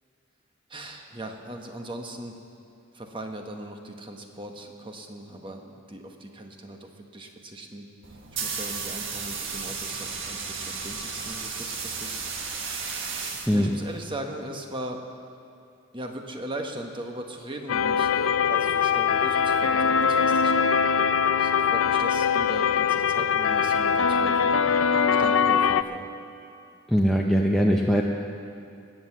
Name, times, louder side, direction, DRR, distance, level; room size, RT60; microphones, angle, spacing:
voice 1, 0.7-2.4 2.9-7.9 8.4-12.2 12.5-12.9 13.5-15.0 15.9-26.1, right 1 dB, 25° right, 3 dB, 1.1 m, -39 dB
sound 1, 8.0-14.0, right 5 dB, 60° right, 1.5 m, -34 dB
sound 2, 17.7-25.8, left 6 dB, 70° left, 0.5 m, -22 dB
voice 2, 26.9-28.0, equal, ahead, -1 dB, 0.6 m, -21 dB
19.0 x 7.8 x 7.4 m, 2.5 s
head